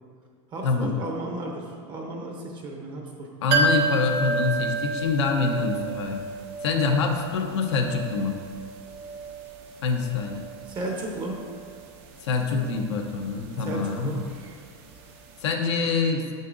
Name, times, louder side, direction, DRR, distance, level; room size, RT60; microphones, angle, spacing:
voice 1, 0.5-3.3 10.7-11.4 13.6-14.2, right 2 dB, 30° right, 0 dB, 0.8 m, -34 dB
voice 2, 3.4-6.2 6.6-8.4 9.8-10.4 12.2-14.2 15.4-16.3, left 4 dB, 80° left, 2 dB, 0.8 m, -25 dB
sound 1, 3.5-15.1 15.4-15.5, right 3 dB, 60° right, 0.8 m, -31 dB
6.5 x 5.9 x 2.6 m, 2.1 s
supercardioid pair, 120°, 15 cm